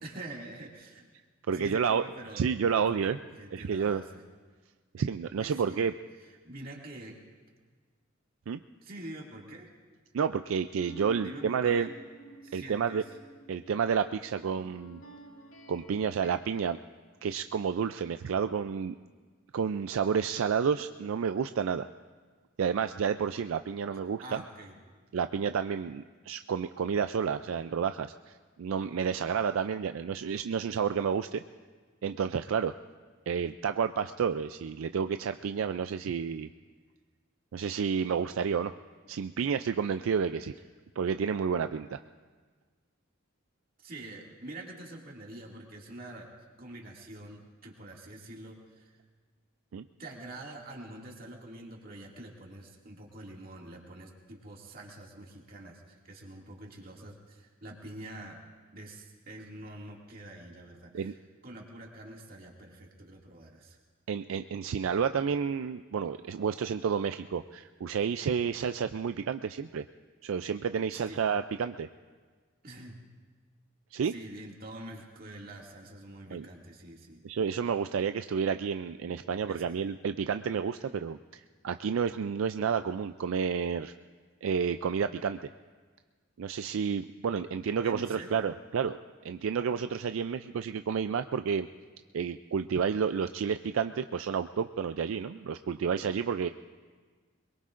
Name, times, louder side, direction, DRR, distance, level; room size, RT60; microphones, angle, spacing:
voice 1, 0.0-1.0 1.5-3.0 3.4-4.2 5.4-5.8 6.4-7.2 8.8-9.7 11.2-11.9 12.4-13.2 24.2-24.8 43.8-46.3 46.6-48.9 50.0-61.2 61.4-63.8 70.9-71.2 72.6-73.0 74.0-77.2 79.5-79.6 87.8-88.5, right 1 dB, 45° right, -1 dB, 2.3 m, -46 dB
voice 2, 1.5-2.0 2.3-3.2 3.5-4.0 4.9-5.9 8.5-8.6 10.1-11.9 12.5-13.0 13.5-15.0 15.7-16.8 17.2-18.9 19.5-21.9 22.6-24.4 25.1-31.4 32.0-32.7 33.3-36.5 37.5-38.7 39.1-40.5 41.0-42.0 49.7-49.8 60.9-61.1 64.1-69.8 70.2-71.9 73.9-74.1 76.3-76.4 77.2-83.9 84.4-85.5 86.4-89.0 89.2-91.7 92.1-96.5, right 6 dB, 75° right, 10 dB, 0.4 m, -30 dB
sound 1, 10.7-16.8, right 1 dB, 80° left, 1.6 m, -50 dB
23.0 x 22.0 x 2.5 m, 1.5 s
head